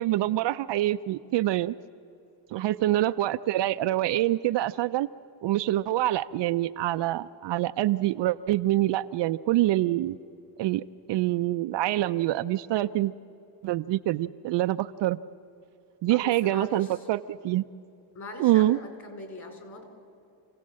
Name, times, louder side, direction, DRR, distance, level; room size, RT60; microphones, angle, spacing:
voice 1, 0.0-1.7 2.5-5.1 5.4-10.2 10.6-10.8 11.1-13.1 13.6-15.2 16.0-17.6 18.4-18.8, right 14 dB, 60° right, 11 dB, 0.6 m, -25 dB
voice 2, 2.6-2.9 16.1-17.0 18.1-19.8, left 2 dB, 35° left, 5 dB, 4.8 m, -41 dB
28.0 x 16.5 x 7.6 m, 2.7 s
cardioid pair, 105°, 50 cm